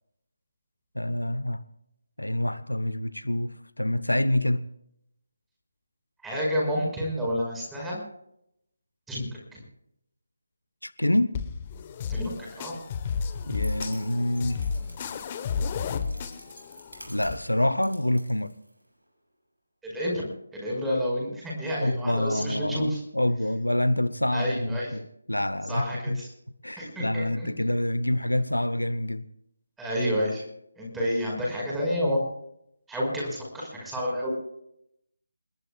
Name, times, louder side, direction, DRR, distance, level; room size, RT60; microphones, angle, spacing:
voice 1, 0.9-1.6 2.2-4.6 10.8-11.4 13.5-14.6 17.1-18.5 21.8-26.2 26.6-29.2, left 1 dB, 80° left, 1.0 m, -27 dB
voice 2, 6.2-8.0 9.1-9.6 12.1-12.8 19.8-20.3 20.5-23.0 24.3-25.0 25.6-26.3 26.8-27.5 29.8-30.5 30.8-32.2 32.9-34.3, equal, 5° right, 5.5 m, -29 dB
sound 1, 11.3-17.3, left 5 dB, 25° left, 1.2 m, -32 dB
sound 2, 13.4-19.1, equal, 80° right, 7.3 m, -48 dB
28.5 x 20.0 x 2.4 m
figure-of-eight pair, 155°, 0 cm